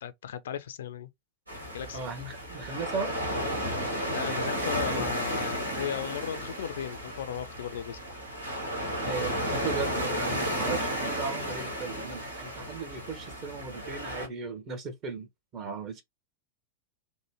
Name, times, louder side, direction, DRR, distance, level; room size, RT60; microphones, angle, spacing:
voice 1, 0.0-1.1 1.6-2.0 4.1-8.0, left 9 dB, 60° left, 0.4 m, -36 dB
sound 1, 1.5-14.3, equal, 80° right, 1.5 m, -33 dB
voice 2, 1.9-3.1 4.9-5.1 9.0-15.3 15.5-16.0, right 4 dB, 35° right, 1.0 m, -37 dB
3.1 x 2.1 x 3.1 m
figure-of-eight pair, 90°, 0 cm